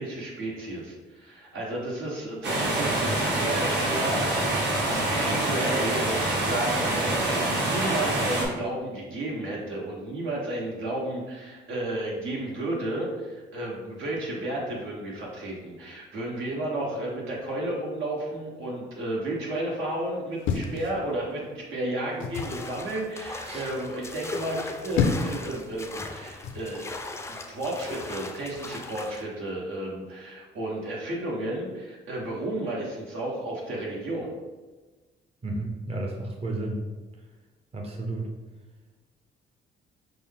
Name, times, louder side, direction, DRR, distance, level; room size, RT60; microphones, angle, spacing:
voice 1, 0.0-27.0 27.3-34.3, right 1 dB, 80° right, -3 dB, 1.2 m, -32 dB
sound 1, 2.4-8.5, right 1 dB, 60° right, 1.3 m, -26 dB
sound 2, 20.4-21.5 22.2-22.6 24.6-25.5 26.4-26.7, left 5 dB, 80° left, 0.5 m, -29 dB
sound 3, 22.3-29.2, left 3 dB, 15° left, 0.4 m, -39 dB
voice 2, 35.4-36.8 37.7-38.3, right 2 dB, 30° right, 0 dB, 0.6 m, -32 dB
5.9 x 2.0 x 3.6 m, 1.3 s
cardioid pair, 90°, 20 cm